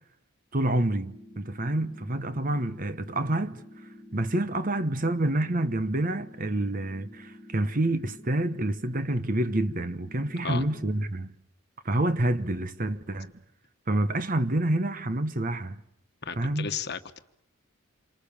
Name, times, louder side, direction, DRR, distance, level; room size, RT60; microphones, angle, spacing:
voice 1, 0.5-3.6 4.1-11.4 11.8-13.3 13.9-15.8 16.4-16.7, right 1 dB, 40° right, 1.0 m, -28 dB
sound 1, 1.0-11.0, left 1 dB, 15° right, 1.9 m, -49 dB
voice 2, 16.2-17.2, left 6 dB, 50° left, 1.3 m, -34 dB
28.0 x 25.0 x 7.2 m
head